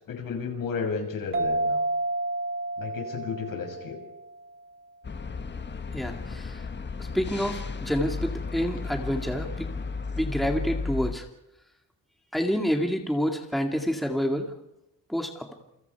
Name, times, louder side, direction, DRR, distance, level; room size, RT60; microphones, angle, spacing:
voice 1, 0.1-1.8 2.8-4.0, left 5 dB, 70° left, 4 dB, 6.7 m, -33 dB
sound 1, 1.3-4.6, right 2 dB, 35° right, 3.1 m, -30 dB
sound 2, 5.0-11.1, left 4 dB, 30° left, 1.5 m, -34 dB
voice 2, 5.9-6.6 7.0-9.7 10.1-11.3 12.3-14.5 15.1-15.5, equal, ahead, 3 dB, 2.2 m, -28 dB
29.0 x 25.0 x 4.8 m, 0.86 s
cardioid pair, 130°, 35 cm